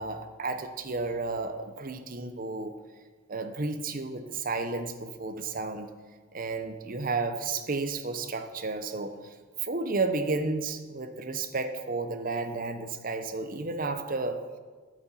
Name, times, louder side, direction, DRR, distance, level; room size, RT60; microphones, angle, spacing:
voice 1, 0.0-2.7 3.3-5.9 6.3-9.4 9.6-14.4, right 3 dB, 40° right, 8 dB, 0.8 m, -32 dB
9.2 x 8.6 x 5.7 m, 1.4 s
head